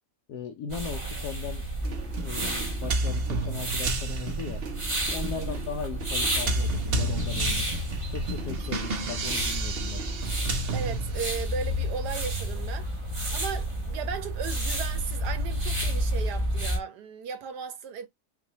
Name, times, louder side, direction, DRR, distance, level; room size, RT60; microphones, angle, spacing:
voice 1, 0.3-1.6 2.2-4.6 5.1-7.7 8.1-10.0, left 6 dB, 75° left, 1.2 m, -38 dB
sound 1, 0.7-16.8, equal, 20° right, 1.1 m, -31 dB
sound 2, 1.8-11.7, right 3 dB, 45° right, 0.8 m, -32 dB
voice 2, 10.7-12.9 13.3-18.1, right 6 dB, 80° right, 1.4 m, -36 dB
6.0 x 2.6 x 2.8 m
omnidirectional pair, 1.7 m